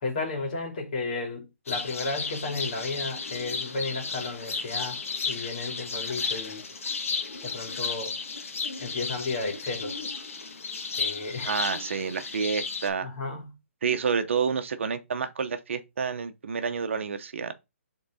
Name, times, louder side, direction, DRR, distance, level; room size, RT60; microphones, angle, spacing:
voice 1, 0.0-5.0 5.2-6.6 7.4-8.1 8.8-10.0 11.0-11.6 13.0-13.6, left 3 dB, 40° left, 2.5 m, -33 dB
sound 1, 1.7-12.9, left 4 dB, 80° left, 1.4 m, -34 dB
voice 2, 11.4-13.1 13.8-17.5, right 6 dB, 60° right, 0.9 m, -29 dB
5.8 x 3.9 x 4.2 m
hypercardioid pair, 160°, 7 cm